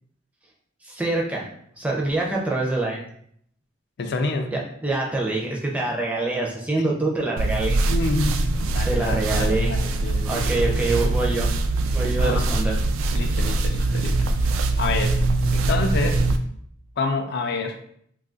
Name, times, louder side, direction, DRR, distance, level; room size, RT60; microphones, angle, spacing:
voice 1, 0.8-1.5 1.8-3.1 4.5-7.8 8.8-9.7 10.2-11.5 11.9-12.8, right 2 dB, 5° right, -2 dB, 0.4 m, -25 dB
voice 2, 4.0-4.5 6.8-7.0 7.9-8.4 8.7-10.7 12.2-12.3 13.1-15.2 15.5-16.2 17.0-17.8, left 3 dB, 55° left, 5 dB, 0.4 m, -28 dB
sound 1, 7.4-16.4, right 2 dB, 80° right, 0.3 m, -22 dB
2.6 x 2.4 x 3.8 m, 0.66 s
head